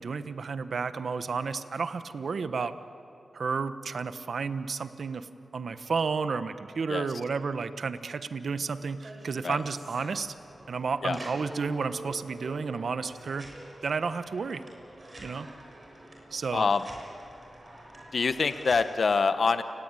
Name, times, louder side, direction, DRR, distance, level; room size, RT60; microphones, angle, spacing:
voice 1, 0.0-2.8 3.3-5.3 5.5-10.3 10.7-13.5 13.8-14.6 15.2-15.5 16.3-16.7, right 5 dB, 70° right, 11 dB, 1.1 m, -32 dB
sound 1, 9.0-18.9, right 1 dB, 40° right, 6.8 m, -46 dB
voice 2, 16.5-16.8 18.1-19.6, left 4 dB, 65° left, 10 dB, 1.0 m, -25 dB
29.5 x 20.5 x 9.1 m, 2.6 s
cardioid pair, 70°, 0 cm